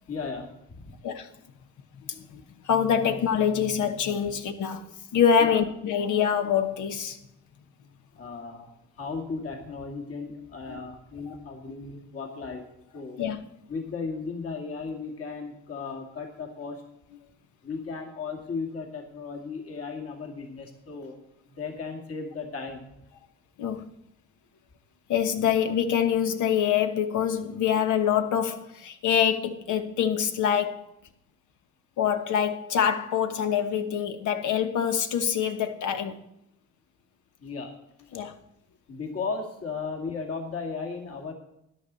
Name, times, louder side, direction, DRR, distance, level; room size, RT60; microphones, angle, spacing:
voice 1, 0.1-0.9 5.4-5.6 8.2-8.7 9.0-12.6 12.9-13.2 13.7-16.8 17.6-21.2 21.6-22.9 37.4-37.7 38.9-41.3, left 4 dB, 50° left, 2.4 m, -35 dB
voice 2, 2.0-4.8 5.1-7.2 10.7-10.8 11.3-11.4 13.2-13.4 23.6-23.8 25.1-30.8 32.0-36.2 38.1-38.3, left 8 dB, 80° left, 1.3 m, -25 dB
13.5 x 10.5 x 4.1 m
cardioid pair, 90°, 30 cm